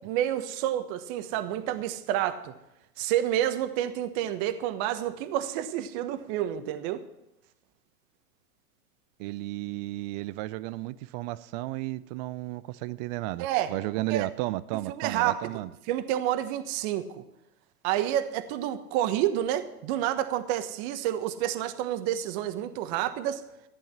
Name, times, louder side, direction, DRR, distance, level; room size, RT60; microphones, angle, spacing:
voice 1, 0.0-2.5 3.0-7.0 13.4-13.7 14.1-14.3 14.9-15.6 15.9-17.2 17.8-23.4, right 12 dB, 45° right, 1.4 m, -29 dB
voice 2, 9.2-15.7, right 17 dB, 30° right, 0.4 m, -33 dB
14.5 x 11.0 x 5.9 m
hypercardioid pair, 110°, 45 cm